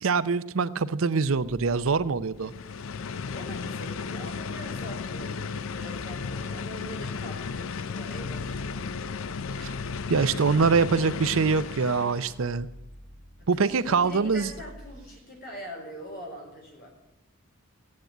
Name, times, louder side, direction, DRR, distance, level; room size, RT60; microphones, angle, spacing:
voice 1, 0.0-2.5 9.6-9.7 10.1-12.7 13.5-14.5, right 4 dB, 70° right, 15 dB, 0.6 m, -24 dB
sound 1, 2.4-12.4, left 5 dB, 65° left, 0.5 m, -34 dB
voice 2, 3.3-5.5 5.7-9.0 13.4-16.9, equal, 45° left, 1 dB, 4.3 m, -43 dB
sound 2, 3.8-15.0, equal, 85° left, 4.4 m, -49 dB
15.0 x 9.6 x 9.0 m, 0.96 s
head